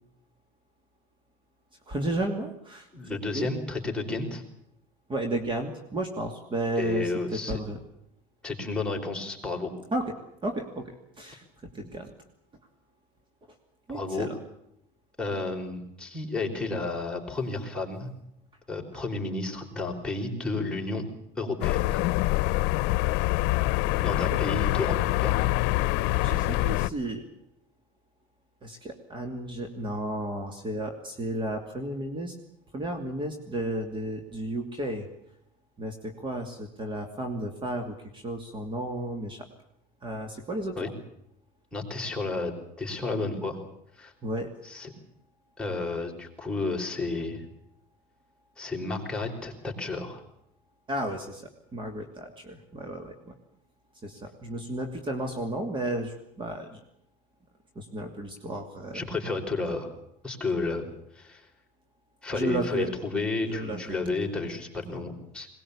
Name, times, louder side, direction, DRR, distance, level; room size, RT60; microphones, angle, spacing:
voice 1, 1.9-3.5 5.1-7.8 9.9-10.2 10.4-12.1 13.9-14.4 24.3-24.4 26.2-27.2 28.6-32.4 32.7-35.1 35.8-39.4 40.0-40.9 44.2-44.5 50.9-53.3 54.0-56.8 57.8-59.0 62.3-62.9 63.4-64.1, right 1 dB, 30° right, 5 dB, 2.7 m, -33 dB
voice 2, 2.9-4.4 6.8-7.6 8.4-9.7 13.9-14.3 15.2-18.1 18.7-21.0 21.4-22.1 24.0-24.9 25.2-25.5 40.8-40.9 41.7-42.5 42.8-43.6 44.0-44.1 44.6-44.9 45.6-47.4 48.6-50.2 58.9-59.9 60.2-60.9 61.1-61.5 62.2-65.5, left 3 dB, 5° left, -1 dB, 5.1 m, -31 dB
sound 1, 21.6-26.9, left 18 dB, 80° left, 0.8 m, -25 dB
21.5 x 20.0 x 8.5 m, 0.77 s
cardioid pair, 130°, 18 cm